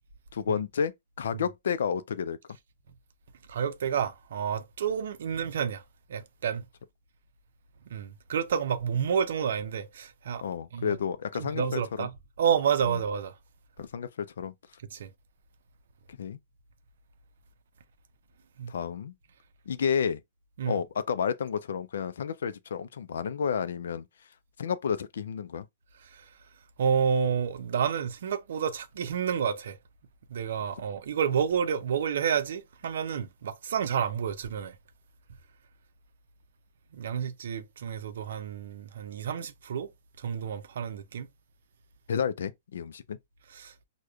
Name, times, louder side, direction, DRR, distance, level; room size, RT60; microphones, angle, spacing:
voice 1, 0.3-2.4 10.4-12.1 12.9-13.0 13.8-14.5 16.1-16.4 18.7-19.1 19.7-20.2 20.7-24.1 24.6-25.7 42.1-43.2, left 7 dB, 75° left, 0.4 m, -31 dB
voice 2, 3.5-5.8 6.1-6.6 7.9-10.4 10.7-11.0 11.4-12.1 12.4-13.3 14.9-15.1 18.6-18.7 20.6-20.8 26.1-26.3 26.8-29.8 30.3-34.8 36.9-39.9 40.2-41.3 43.5-43.7, right 7 dB, 70° right, 0.5 m, -29 dB
4.8 x 2.2 x 2.3 m
hypercardioid pair, 130°, 0 cm